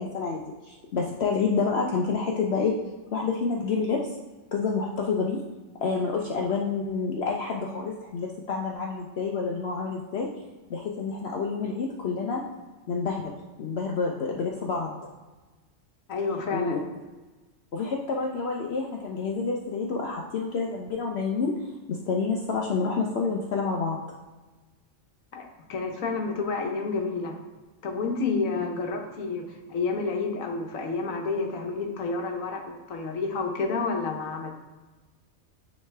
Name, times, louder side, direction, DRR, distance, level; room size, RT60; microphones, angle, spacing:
voice 1, 0.0-2.7 3.1-4.1 4.5-5.4 5.8-10.3 10.7-12.4 12.9-15.0 16.5-16.8 17.7-21.5 21.9-24.0, left 4 dB, 60° left, -1 dB, 0.8 m, -28 dB
voice 2, 16.1-16.8 25.3-27.3 27.8-34.5, left 4 dB, 85° left, 3 dB, 1.3 m, -30 dB
9.1 x 3.2 x 3.3 m, 1.2 s
omnidirectional pair, 1.4 m